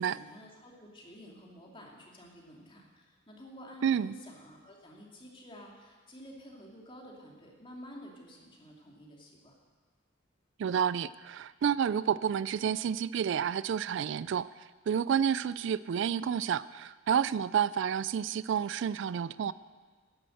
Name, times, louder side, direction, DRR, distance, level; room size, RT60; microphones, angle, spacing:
voice 1, 0.0-9.6, equal, 25° left, -1 dB, 2.5 m, -50 dB
voice 2, 3.8-4.1 10.6-14.5 14.9-19.5, right 8 dB, 65° right, 18 dB, 0.3 m, -30 dB
12.0 x 11.0 x 7.8 m, 1.4 s
head